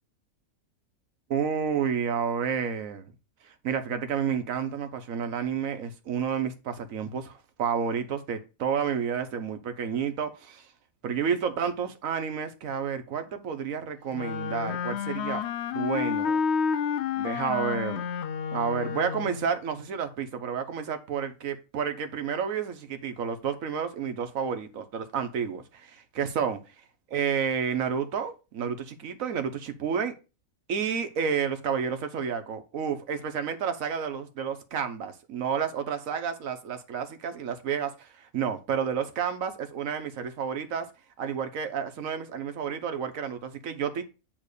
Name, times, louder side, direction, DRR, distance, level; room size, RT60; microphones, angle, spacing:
voice 1, 1.3-3.1 3.4-10.7 11.0-15.4 15.7-16.4 17.2-18.0 18.5-26.6 27.1-30.1 30.7-40.9 41.2-44.0, right 7 dB, 70° right, 1.4 m, -30 dB
Wind instrument woodwind instrument, 14.1-19.5, left 7 dB, 65° left, 0.7 m, -30 dB
9.0 x 3.2 x 6.5 m
omnidirectional pair, 1.5 m